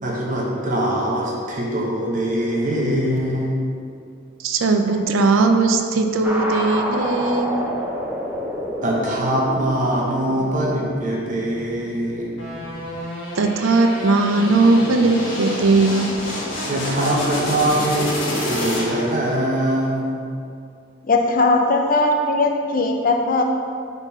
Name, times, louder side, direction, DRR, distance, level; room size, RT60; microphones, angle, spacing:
voice 1, 0.0-3.5 8.8-12.4 16.7-18.1 18.4-20.2, right 1 dB, 40° right, -3 dB, 0.9 m, -22 dB
voice 2, 4.4-7.6 13.4-16.1, right 3 dB, 75° right, 5 dB, 0.5 m, -18 dB
sound 1, 6.2-13.0, equal, 10° right, 0.6 m, -29 dB
sound 2, 12.4-19.2, left 1 dB, 65° left, 1.3 m, -28 dB
voice 3, 21.0-23.4, left 2 dB, 45° left, 3 dB, 0.5 m, -19 dB
4.5 x 4.0 x 5.5 m, 2.4 s
head